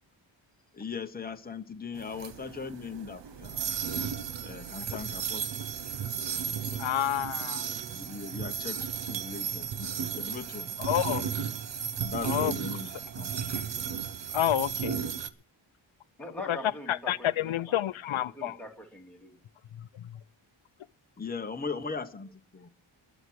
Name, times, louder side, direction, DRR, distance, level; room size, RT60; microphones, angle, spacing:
voice 1, 0.7-3.7 4.4-5.5 6.7-7.0 7.9-10.8 12.0-13.9 21.2-22.4, left 5 dB, 20° left, 1.1 m, -39 dB
sound 1, 1.9-15.3, right 7 dB, 60° right, 1.0 m, -34 dB
voice 2, 3.3-3.6 16.2-17.8 18.1-19.4, left 1 dB, 5° left, 2.8 m, -44 dB
voice 3, 6.8-7.6 10.8-11.2 12.2-12.5 14.3-14.9 16.9-18.6, left 11 dB, 70° left, 0.6 m, -29 dB
20.5 x 7.1 x 6.2 m
wide cardioid pair, 130°, 49 cm